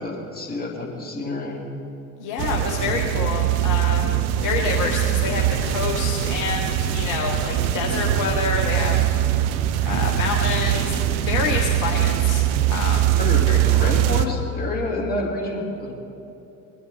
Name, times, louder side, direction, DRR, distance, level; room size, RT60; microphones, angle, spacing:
voice 1, 0.0-1.6 13.2-15.9, left 2 dB, 20° left, -2 dB, 2.7 m, -28 dB
voice 2, 2.2-9.0 9.3-9.6 9.8-12.4 12.7-13.2 13.5-13.9, left 5 dB, 40° left, 0 dB, 1.3 m, -27 dB
sound 1, 2.4-14.3, right 12 dB, 50° right, 0.7 m, -22 dB
20.5 x 11.0 x 3.4 m, 2.9 s
figure-of-eight pair, 70°, 46 cm